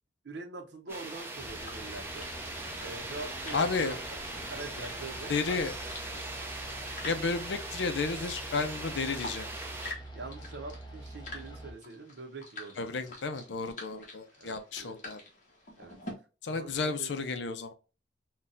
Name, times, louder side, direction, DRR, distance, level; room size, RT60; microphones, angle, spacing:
voice 1, 0.2-2.3 2.8-4.0 4.5-6.2 10.1-13.0 14.4-15.0 15.8-16.0 16.5-17.1, right 3 dB, 70° right, 0.7 m, -44 dB
sound 1, 0.9-16.1, left 2 dB, 45° left, 1.0 m, -48 dB
sound 2, 0.9-9.9, right 2 dB, 15° right, 0.5 m, -40 dB
sound 3, 1.4-11.7, right 1 dB, 25° left, 0.8 m, -46 dB
voice 2, 3.5-4.0 5.3-5.8 7.1-9.5 12.8-15.2 16.4-17.7, left 4 dB, 75° left, 0.5 m, -32 dB
3.9 x 2.2 x 2.5 m
head